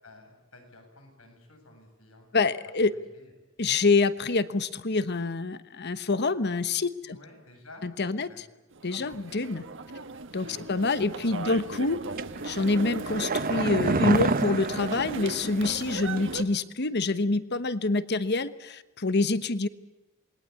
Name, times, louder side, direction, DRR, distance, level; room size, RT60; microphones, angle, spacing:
voice 1, 0.0-2.5 2.9-3.3 7.0-7.8 8.3-8.4 9.0-9.3 10.4-10.7 11.4-11.6, left 2 dB, 90° left, 3 dB, 7.8 m, -52 dB
voice 2, 2.3-2.9 3.6-7.2 7.8-8.3 8.8-9.6 10.3-12.0 12.4-19.7, left 3 dB, 55° left, 13 dB, 1.2 m, -26 dB
sound 1, 8.7-16.4, right 3 dB, 65° right, 1.5 m, -38 dB
sound 2, 12.2-15.9 16.2-16.3, right 3 dB, 45° right, 1.0 m, -28 dB
28.0 x 21.5 x 8.4 m, 1.0 s
head